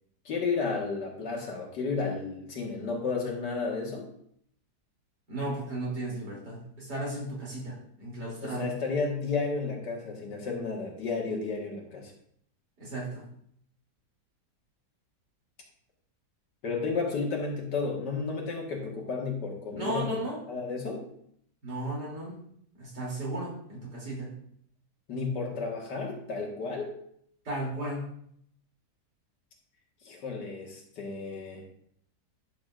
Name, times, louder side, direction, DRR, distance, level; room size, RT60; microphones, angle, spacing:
voice 1, 0.3-4.1 8.4-12.1 16.6-20.2 20.5-21.1 25.1-26.9 30.0-31.6, left 4 dB, 85° left, 0 dB, 2.3 m, -32 dB
voice 2, 5.3-8.6 12.8-13.2 19.8-20.4 21.6-22.4 22.8-24.3 27.5-28.0, right 1 dB, 75° right, -4 dB, 3.6 m, -35 dB
11.5 x 6.5 x 2.5 m, 0.68 s
omnidirectional pair, 1.8 m